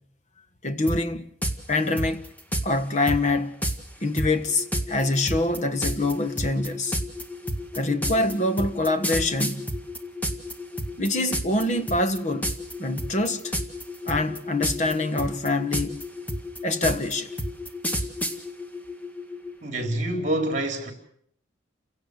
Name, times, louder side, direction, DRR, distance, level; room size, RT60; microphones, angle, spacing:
voice 1, 0.6-1.3 1.7-2.3 2.6-3.5 4.0-7.0 7.7-9.7 11.0-12.5 12.8-13.5 14.0-16.0 16.6-17.3, left 2 dB, 40° left, 1.5 m, -25 dB
sound 1, 0.9-1.0 1.4-1.6 2.0-2.7 3.1-3.2 3.6-3.8 4.2-10.5 10.8-11.6 11.9-12.2 12.4-12.7 13.0-13.8 14.1-14.9 15.2-18.4, right 1 dB, 10° left, 1.9 m, -28 dB
sound 2, 4.5-19.6, left 4 dB, 15° right, 2.1 m, -39 dB
voice 2, 19.6-20.9, right 1 dB, 40° right, 4.3 m, -26 dB
29.5 x 17.0 x 6.8 m
head